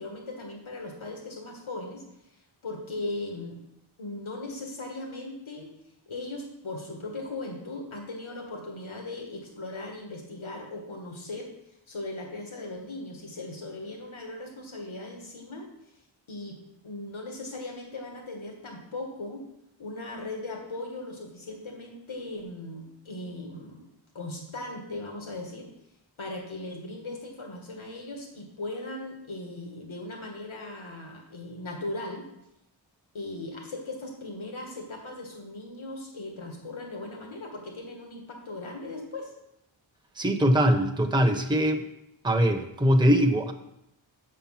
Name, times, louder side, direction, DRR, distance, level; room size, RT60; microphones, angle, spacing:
voice 1, 0.0-2.0 2.6-3.6 4.0-5.7 6.1-11.5 11.9-15.7 16.3-16.6 16.8-19.4 19.8-23.9 24.1-25.7 26.2-32.3 33.1-39.3, left 2 dB, 75° left, 1 dB, 1.8 m, -38 dB
voice 2, 40.2-41.8 42.2-43.5, equal, 10° right, 5 dB, 0.8 m, -22 dB
7.4 x 6.3 x 5.8 m, 0.83 s
wide cardioid pair, 60°, 48 cm